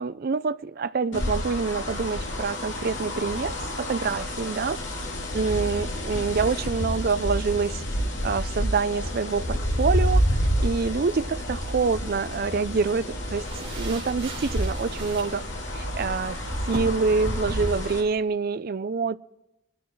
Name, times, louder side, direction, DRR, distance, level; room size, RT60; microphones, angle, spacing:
voice 1, 0.0-4.8 5.3-7.8 8.2-10.2 10.6-15.4 15.7-16.4 16.7-19.2, right 4 dB, 50° right, 0.4 m, -26 dB
sound 1, 1.1-18.0, equal, 65° left, 3.3 m, -29 dB
sound 2, 10.0-16.8, right 2 dB, 30° right, 3.6 m, -42 dB
24.0 x 13.0 x 3.2 m
head